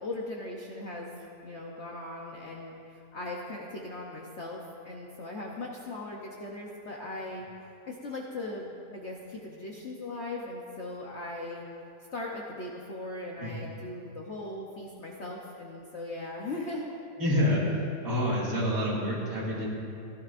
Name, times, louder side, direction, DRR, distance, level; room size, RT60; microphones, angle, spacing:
voice 1, 0.0-1.1 1.4-7.5 7.9-11.6 12.1-16.9, left 2 dB, 50° left, -2 dB, 0.9 m, -39 dB
voice 2, 17.2-17.6 18.0-19.7, left 1 dB, 55° right, -6 dB, 2.5 m, -27 dB
15.5 x 11.5 x 2.5 m, 2.6 s
omnidirectional pair, 1.9 m